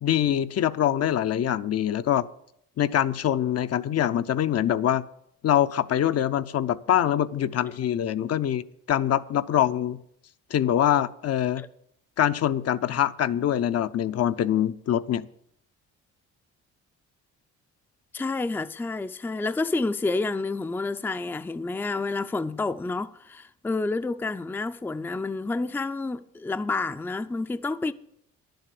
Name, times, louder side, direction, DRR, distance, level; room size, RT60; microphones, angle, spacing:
voice 1, 0.0-2.3 2.8-5.0 5.4-8.6 8.9-10.0 10.5-11.6 12.2-15.3, left 10 dB, 55° left, 0.6 m, -24 dB
voice 2, 18.1-27.9, left 3 dB, 5° left, 0.4 m, -29 dB
11.0 x 7.9 x 8.4 m
cardioid pair, 90°, 30 cm